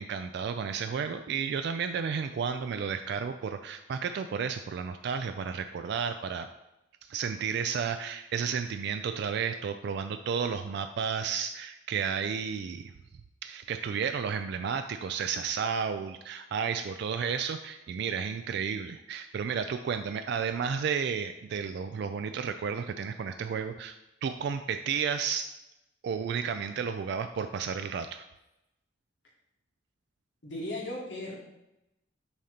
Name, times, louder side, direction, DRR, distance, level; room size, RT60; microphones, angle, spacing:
voice 1, 0.0-6.5 7.1-12.9 13.4-24.0 24.2-25.5 26.0-28.2, right 6 dB, 65° right, 8 dB, 0.3 m, -32 dB
voice 2, 30.4-31.4, left 1 dB, 70° left, -3 dB, 1.4 m, -36 dB
7.2 x 2.8 x 5.0 m, 0.91 s
head